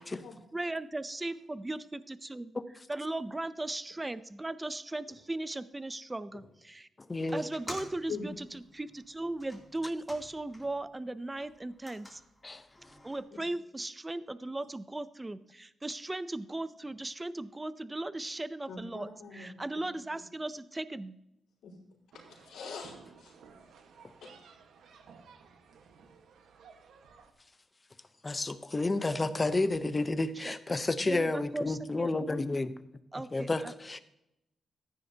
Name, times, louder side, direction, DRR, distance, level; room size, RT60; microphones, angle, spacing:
voice 1, 0.5-2.5 2.9-6.9 7.3-12.2 13.0-21.2 30.4-32.1 33.1-33.7, right 2 dB, 15° right, 15 dB, 0.5 m, -37 dB
voice 2, 7.1-7.4 12.4-12.6 28.2-32.7 33.3-34.0, left 2 dB, 25° left, 12 dB, 0.8 m, -30 dB
sound 1, 7.4-10.9 11.2-13.2, left 1 dB, 5° left, 2.9 m, -50 dB
voice 3, 18.7-19.6 19.9-20.0 21.6-21.8 22.1-23.3 24.2-24.3, left 5 dB, 85° left, -9 dB, 4.2 m, -43 dB
sound 2, 22.1-27.3, right 5 dB, 85° right, 1.4 m, -56 dB
14.5 x 10.0 x 2.8 m, 0.86 s
cardioid pair, 100°, 0 cm